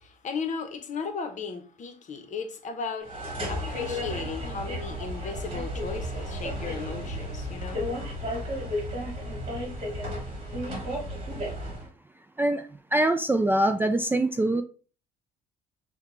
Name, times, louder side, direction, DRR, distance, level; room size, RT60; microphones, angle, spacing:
voice 1, 0.0-3.2 3.5-7.9, left 5 dB, 45° left, 0.8 m, -36 dB
sound 1, 3.0-11.9, equal, 35° right, 1.5 m, -33 dB
voice 2, 12.4-14.6, right 1 dB, 10° right, 0.3 m, -24 dB
6.4 x 2.2 x 3.0 m
cardioid pair, 110°, 17 cm